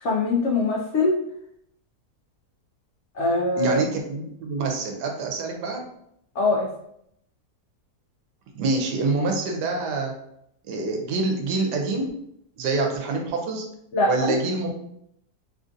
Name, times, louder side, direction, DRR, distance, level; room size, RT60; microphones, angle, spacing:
voice 1, 0.0-1.1 3.2-3.8 6.4-6.7 13.9-14.3, left 2 dB, 85° left, -2 dB, 0.6 m, -22 dB
voice 2, 3.6-5.8 8.6-10.1 10.7-12.1 12.6-13.6 14.1-14.8, right 3 dB, 85° right, 2 dB, 1.2 m, -26 dB
3.4 x 2.5 x 2.5 m, 0.74 s
omnidirectional pair, 1.8 m